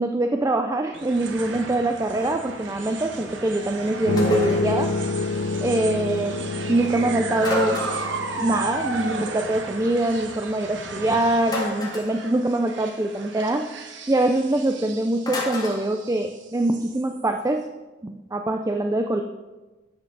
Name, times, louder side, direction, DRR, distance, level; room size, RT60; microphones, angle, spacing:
voice 1, 0.0-4.9 5.6-7.8 8.4-13.7 14.1-17.6 18.0-19.2, right 2 dB, 20° right, 5 dB, 0.4 m, -24 dB
sound 1, 0.9-17.4, right 3 dB, 80° right, 1.1 m, -35 dB
sound 2, 4.1-9.3, left 3 dB, 85° left, 0.6 m, -28 dB
sound 3, 4.2-4.7 7.4-8.2 11.5-12.2 15.3-15.8, left 2 dB, 20° left, 2.0 m, -29 dB
10.5 x 7.9 x 3.9 m, 1.2 s
head